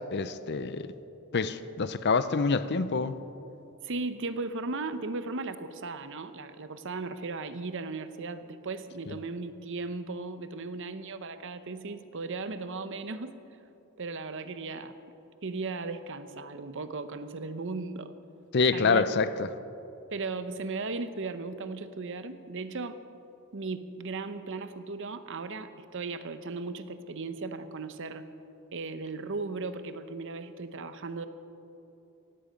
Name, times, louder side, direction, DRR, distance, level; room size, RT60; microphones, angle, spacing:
voice 1, 0.1-0.9 1.3-3.2 18.5-19.5, left 4 dB, 50° left, 13 dB, 0.6 m, -26 dB
voice 2, 3.8-13.4 14.0-15.0 15.4-18.2 18.7-19.1 20.1-23.0 23.5-28.3 28.7-31.3, right 3 dB, 60° right, 11 dB, 0.8 m, -36 dB
17.0 x 15.5 x 5.2 m, 2.9 s
head